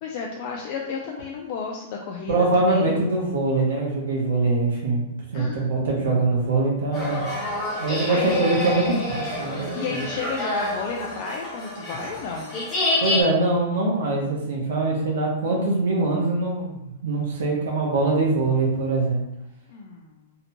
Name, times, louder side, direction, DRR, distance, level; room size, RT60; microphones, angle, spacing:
voice 1, 0.0-2.9 5.3-6.2 7.4-8.3 9.7-12.6 19.7-20.2, left 5 dB, 40° left, -1 dB, 0.3 m, -33 dB
voice 2, 2.3-5.0 5.3-7.2 7.8-10.0 13.0-19.2, right 2 dB, 85° right, -3 dB, 0.8 m, -23 dB
sound 1, 6.9-13.2, left 1 dB, 15° left, 0.9 m, -28 dB
2.7 x 2.1 x 2.8 m, 0.89 s
supercardioid pair, 160°, 0 cm